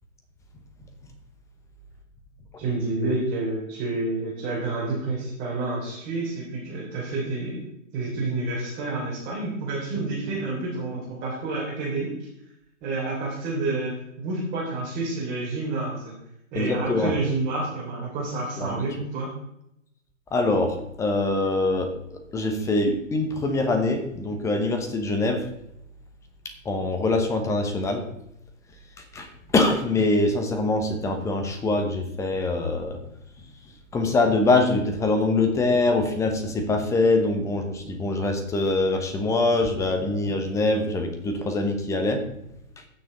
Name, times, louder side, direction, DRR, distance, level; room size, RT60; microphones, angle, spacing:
voice 1, 2.6-7.6 7.9-12.1 12.8-16.1 16.5-19.3, right 2 dB, 20° right, -7 dB, 3.4 m, -29 dB
voice 2, 16.5-17.1 18.6-18.8 20.3-25.5 26.6-28.0 29.1-29.3 29.5-33.0 33.9-42.2, left 2 dB, 10° left, 5 dB, 1.0 m, -24 dB
15.0 x 6.4 x 4.0 m, 0.80 s
figure-of-eight pair, 125°, 39 cm